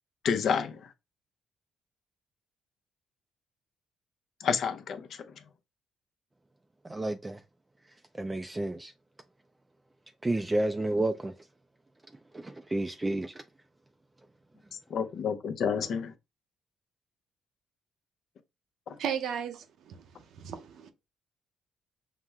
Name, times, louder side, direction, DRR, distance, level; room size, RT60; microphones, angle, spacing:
voice 1, 0.2-0.8 4.4-5.2 14.9-16.1 18.9-19.0, left 6 dB, 65° left, 0.6 m, -29 dB
voice 2, 6.8-7.4 8.2-8.9 10.2-11.3 12.3-13.4, right 2 dB, 15° right, 0.3 m, -30 dB
voice 3, 19.0-20.1 20.4-20.9, right 8 dB, 75° right, 0.7 m, -35 dB
5.7 x 2.1 x 3.5 m
cardioid pair, 90°, 0 cm